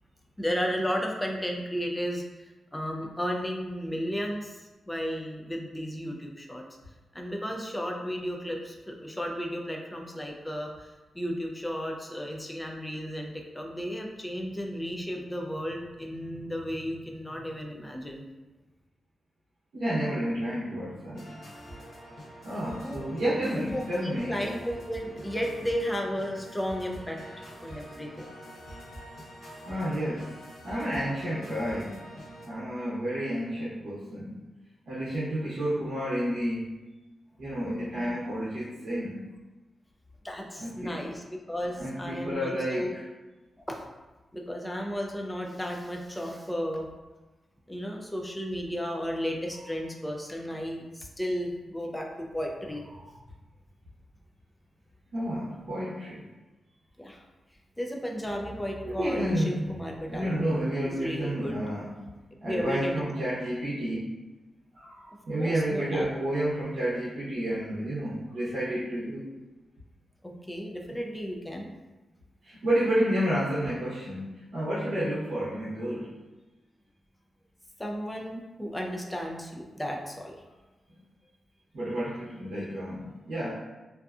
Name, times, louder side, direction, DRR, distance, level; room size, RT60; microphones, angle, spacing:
voice 1, 0.4-6.6 7.1-18.3 22.8-23.0 23.4-27.2 27.6-28.3 38.0-38.1 40.2-42.9 43.6-43.8 44.3-46.9 47.7-52.9 57.0-57.2 57.8-61.6 62.5-62.9 65.4-66.1 70.5-71.7 77.8-80.4, equal, 10° left, 0 dB, 0.3 m, -34 dB
voice 2, 19.7-21.2 22.4-24.4 29.7-30.3 30.6-31.9 32.4-34.3 34.9-36.7 37.4-39.2 40.6-41.0 41.7-43.0 53.0-53.1 55.1-56.2 58.8-59.6 60.1-61.9 62.4-64.1 64.7-69.2 72.4-76.1 81.7-83.5, equal, 65° right, -9 dB, 0.7 m, -30 dB
sound 1, 21.1-32.5, equal, 60° left, 0.7 m, -45 dB
2.6 x 2.3 x 2.3 m, 1.1 s
wide cardioid pair, 150°, 0 cm